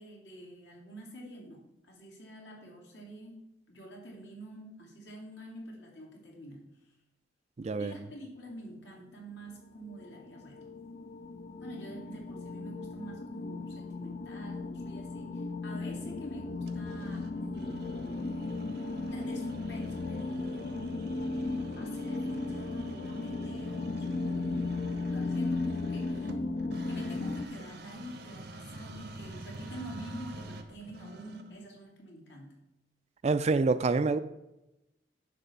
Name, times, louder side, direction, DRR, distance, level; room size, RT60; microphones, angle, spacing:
voice 1, 0.0-3.4 3.7-6.7 7.8-10.6 11.6-18.2 19.1-21.2 21.8-26.3 26.8-32.6, equal, 75° left, -2 dB, 2.6 m, -47 dB
voice 2, 7.6-7.9 33.2-34.2, right 3 dB, 35° right, 12 dB, 0.4 m, -26 dB
sound 1, 9.7-27.5, left 3 dB, 45° left, 0.4 m, -36 dB
sound 2, 16.7-31.7, right 2 dB, 60° right, 0.8 m, -48 dB
9.7 x 3.4 x 6.9 m, 0.93 s
head